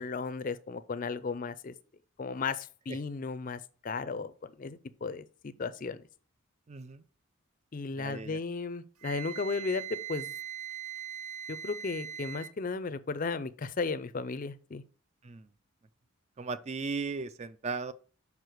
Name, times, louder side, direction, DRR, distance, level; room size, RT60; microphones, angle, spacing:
voice 1, 0.0-1.7 2.2-6.0 7.7-10.3 11.5-14.8, left 4 dB, 35° left, 0.4 m, -35 dB
voice 2, 6.7-7.0 8.0-8.4 15.2-15.4 16.4-17.9, right 4 dB, 30° right, 0.3 m, -36 dB
Wind instrument woodwind instrument, 9.0-12.5, right 9 dB, 85° right, 0.8 m, -41 dB
5.5 x 4.7 x 6.4 m
head